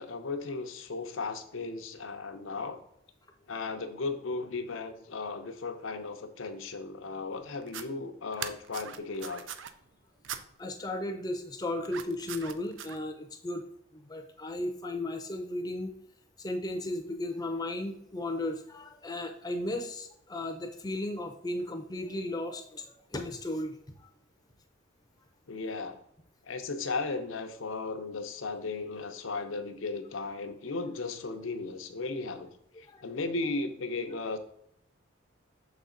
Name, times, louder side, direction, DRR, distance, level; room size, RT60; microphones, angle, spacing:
voice 1, 0.0-2.8 3.5-9.5 25.5-26.0 26.5-32.5 32.8-34.4, left 3 dB, 80° left, 8 dB, 0.7 m, -36 dB
sound 1, 7.6-7.8 8.3-9.7 10.2-10.4 11.8-13.0, right 8 dB, 70° right, 0.5 m, -40 dB
voice 2, 10.6-13.6 13.9-15.9 16.4-22.8 23.1-23.8 32.9-33.0, left 1 dB, 20° left, 5 dB, 0.6 m, -35 dB
6.7 x 4.1 x 3.8 m, 0.74 s
head